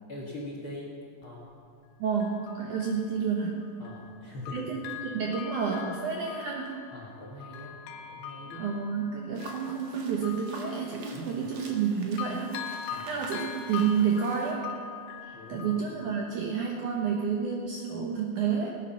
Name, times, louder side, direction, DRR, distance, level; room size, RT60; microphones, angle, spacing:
voice 1, 0.1-0.9 1.2-1.4 3.8-4.7 6.9-7.7 8.1-8.6 11.1-11.5 12.9-13.1 15.3-15.8, left 1 dB, 50° left, -4 dB, 1.6 m, -42 dB
Bell, 1.2-1.3 2.2-4.2 4.5-11.9 12.2-16.8 17.2-17.3, left 8 dB, 80° left, 3.0 m, -43 dB
voice 2, 2.0-3.7 4.5-6.7 8.5-12.6 13.1-14.7 15.2-18.7, right 6 dB, 75° right, 0 dB, 1.8 m, -30 dB
sound 1, 9.3-14.5, right 3 dB, 60° right, 1.9 m, -47 dB
18.0 x 9.3 x 5.8 m, 2.3 s
omnidirectional pair, 5.0 m